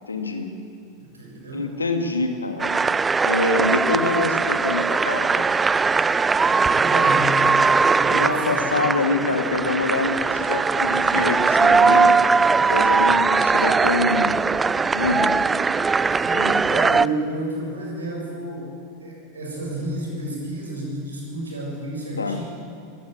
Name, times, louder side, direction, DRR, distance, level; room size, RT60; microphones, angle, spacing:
voice 1, 0.1-0.5 1.5-2.7 3.2-5.5 8.0-14.4 14.9-15.3 16.3-16.6 22.2-22.4, left 3 dB, 85° left, 6 dB, 2.1 m, -25 dB
voice 2, 1.0-1.6 6.7-7.4 8.0-8.6 16.2-18.7 19.0-22.5, right 1 dB, 80° right, -1 dB, 7.1 m, -31 dB
sound 1, 2.6-17.1, right 4 dB, 15° right, 0.5 m, -20 dB
23.0 x 16.5 x 8.2 m, 2.6 s
figure-of-eight pair, 85°, 0 cm